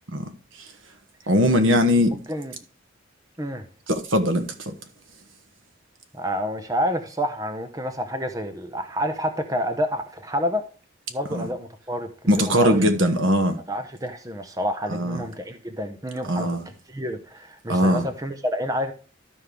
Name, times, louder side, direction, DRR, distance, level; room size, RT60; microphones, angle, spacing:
voice 1, 1.3-2.2 3.9-4.7 11.3-11.4 12.3-13.6 14.9-15.2 16.3-16.6 17.7-18.0, equal, 80° right, 1.3 m, -20 dB
voice 2, 2.1-2.5 3.4-3.6 6.1-10.6 11.1-12.1 12.4-12.8 13.7-18.9, equal, 15° right, 0.8 m, -29 dB
13.0 x 5.5 x 3.4 m
head